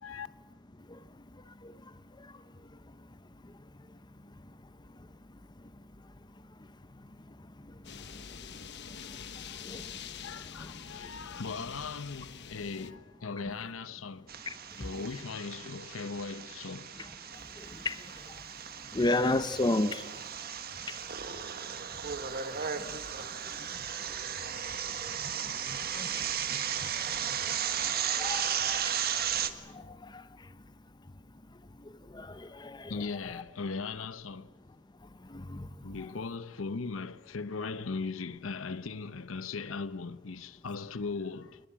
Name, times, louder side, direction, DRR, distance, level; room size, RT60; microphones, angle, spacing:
sound 1, 7.8-12.9, left 7 dB, 60° left, 1.1 m, -45 dB
voice 1, 9.9-14.3 14.8-17.1 32.9-34.5 35.8-41.6, left 4 dB, 80° left, 0.8 m, -38 dB
sound 2, 14.3-29.5, right 8 dB, 50° right, 1.5 m, -35 dB
voice 2, 18.9-20.0 26.0-26.1 28.2-28.5 32.1-32.3 32.6-32.9 35.3-35.7, left 2 dB, 20° left, 0.7 m, -29 dB
23.0 x 20.5 x 8.7 m
head